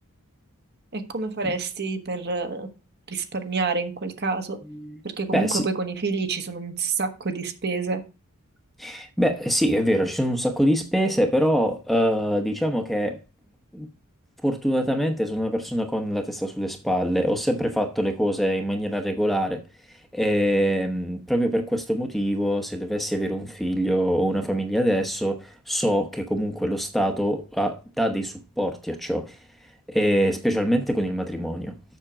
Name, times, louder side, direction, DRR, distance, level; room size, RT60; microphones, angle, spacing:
voice 1, 0.9-2.7 3.1-4.6 5.2-8.0, right 4 dB, 50° right, 1.3 m, -28 dB
voice 2, 5.3-5.7 8.8-13.2 13.7-13.9 14.4-19.6 20.1-29.4 29.9-31.7, equal, ahead, 0.9 m, -24 dB
7.4 x 6.6 x 4.9 m
head